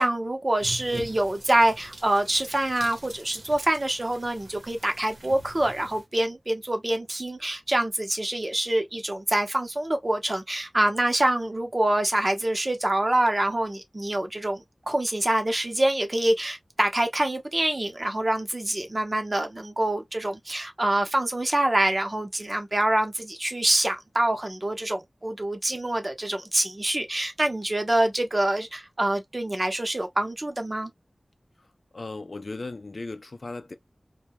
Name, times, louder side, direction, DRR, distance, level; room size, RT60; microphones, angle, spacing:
voice 1, 0.0-30.9, right 1 dB, 40° right, 0.7 m, -25 dB
sound 1, 0.6-6.0, right 2 dB, 85° right, 0.8 m, -44 dB
voice 2, 31.9-33.7, left 3 dB, 70° left, 0.4 m, -36 dB
2.2 x 2.1 x 2.8 m
wide cardioid pair, 60°, 0 cm